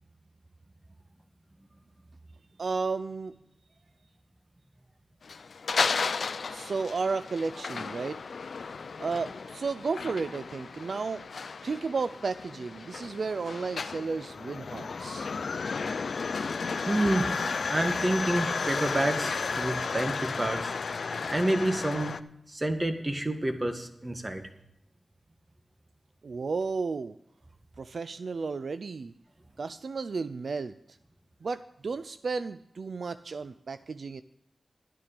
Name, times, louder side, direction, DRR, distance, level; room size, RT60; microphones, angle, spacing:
voice 1, 2.6-3.4 6.5-8.2 9.0-11.2 11.6-15.3 26.2-27.2 27.8-29.1 29.6-31.0 31.4-34.2, right 4 dB, 75° right, 13 dB, 0.4 m, -33 dB
sound 1, 5.2-22.2, left 5 dB, 75° left, 0.5 m, -33 dB
voice 2, 16.9-20.7 21.3-22.2 22.5-24.4, right 1 dB, 30° right, 6 dB, 1.8 m, -29 dB
12.0 x 10.0 x 5.1 m, 0.82 s
cardioid pair, 40°, 0 cm